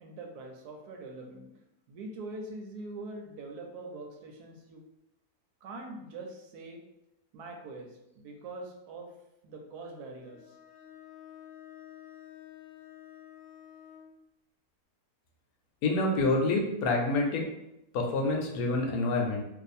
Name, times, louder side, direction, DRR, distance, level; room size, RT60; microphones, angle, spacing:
voice 1, 0.0-1.5 1.9-4.8 5.6-6.8 7.3-9.1 9.4-10.5, right 2 dB, 75° right, 2 dB, 1.1 m, -43 dB
Bowed string instrument, 10.2-14.2, left 11 dB, 50° left, 0.6 m, -50 dB
voice 2, 15.8-17.5 17.9-19.4, left 2 dB, 70° left, 1 dB, 1.0 m, -27 dB
2.7 x 2.5 x 4.1 m, 0.86 s
omnidirectional pair, 1.8 m